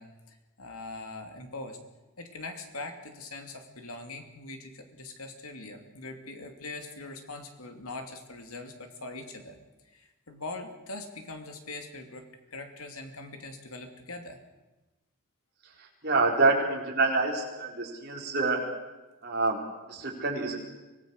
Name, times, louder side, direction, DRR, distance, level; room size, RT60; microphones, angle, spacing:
voice 1, 0.0-1.8 2.2-9.6 9.9-14.4, left 2 dB, 85° left, 5 dB, 2.8 m, -42 dB
voice 2, 15.8-18.7 19.2-20.6, right 3 dB, 50° right, 0 dB, 4.3 m, -27 dB
25.0 x 18.5 x 6.6 m, 1.1 s
head